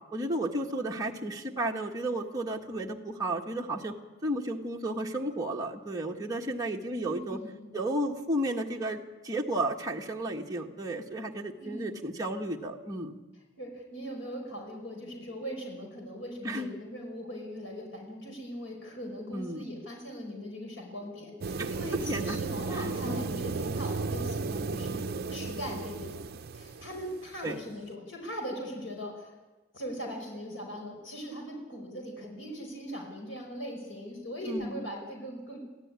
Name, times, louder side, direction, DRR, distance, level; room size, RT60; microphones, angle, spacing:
voice 1, 0.1-4.0 4.2-7.4 7.7-13.1 16.4-16.8 19.3-19.6 21.6-21.7 22.1-22.4 22.7-23.3 27.4-27.5 34.5-34.8, right 1 dB, 20° right, -1 dB, 1.6 m, -33 dB
voice 2, 6.9-7.8 11.6-12.0 13.6-29.3 29.7-35.6, equal, 75° left, 1 dB, 5.1 m, -40 dB
sound 1, 21.4-27.4, right 4 dB, 55° right, 0.6 m, -34 dB
24.5 x 15.5 x 9.7 m, 1.2 s
head